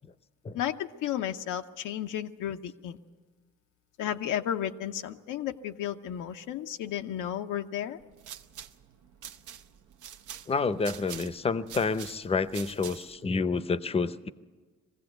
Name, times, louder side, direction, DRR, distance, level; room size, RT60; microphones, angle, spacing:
voice 1, 0.5-3.0 4.0-8.0, left 10 dB, 90° left, 6 dB, 0.8 m, -33 dB
sound 1, 8.0-13.3, right 9 dB, 80° right, 0.8 m, -45 dB
voice 2, 10.5-14.3, left 4 dB, 20° left, 14 dB, 0.6 m, -29 dB
21.5 x 15.5 x 7.9 m, 1.4 s
cardioid pair, 90°, 30 cm